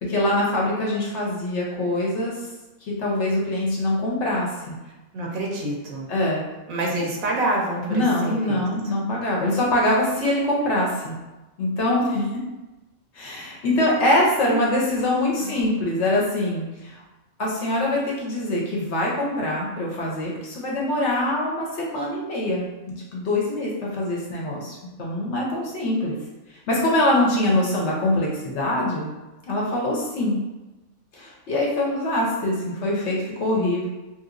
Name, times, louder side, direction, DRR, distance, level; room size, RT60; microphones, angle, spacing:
voice 1, 0.0-2.3 2.9-4.8 6.1-6.4 7.9-11.1 11.6-12.3 13.1-17.0 17.4-22.7 23.1-26.1 26.7-29.1 29.5-30.4 31.1-33.9, left 1 dB, 60° left, -3 dB, 0.9 m, -23 dB
voice 2, 5.1-6.1 6.7-8.9 14.4-15.6, right 1 dB, 80° right, -2 dB, 1.1 m, -28 dB
2.9 x 2.8 x 2.4 m, 1.1 s
omnidirectional pair, 1.4 m